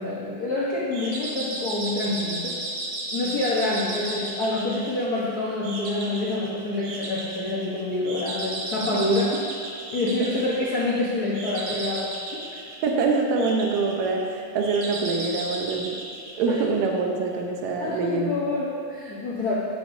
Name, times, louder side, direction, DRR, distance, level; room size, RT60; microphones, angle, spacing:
voice 1, 0.0-2.6 3.1-9.4 9.9-12.6 16.5-16.7 17.8-19.5, left 2 dB, 85° left, -5 dB, 0.8 m, -27 dB
sound 1, 0.9-17.0, right 2 dB, 90° right, 2.9 m, -34 dB
voice 2, 12.8-16.0 16.4-18.4, right 4 dB, 75° right, 1 dB, 2.2 m, -25 dB
14.0 x 9.1 x 2.7 m, 2.6 s
omnidirectional pair, 3.4 m